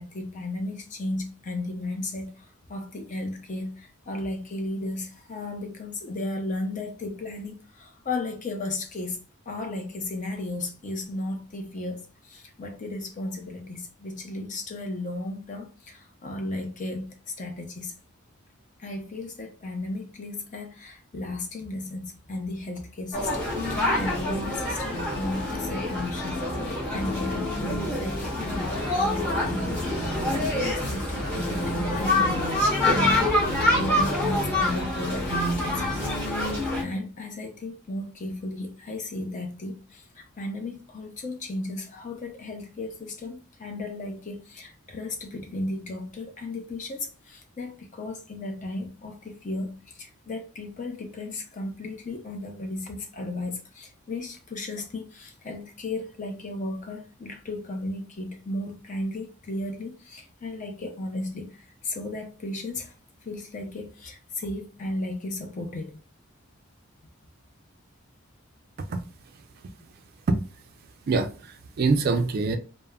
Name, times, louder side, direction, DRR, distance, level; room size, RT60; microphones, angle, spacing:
voice 1, 0.0-9.2 9.5-17.9 18.8-35.8 36.2-62.9 63.3-66.0, left 2 dB, 35° left, 0.5 m, -35 dB
sound 1, 23.1-36.8, left 1 dB, 10° left, 1.1 m, -26 dB
voice 2, 71.1-72.6, right 3 dB, 45° right, 0.3 m, -24 dB
3.4 x 2.0 x 2.2 m
head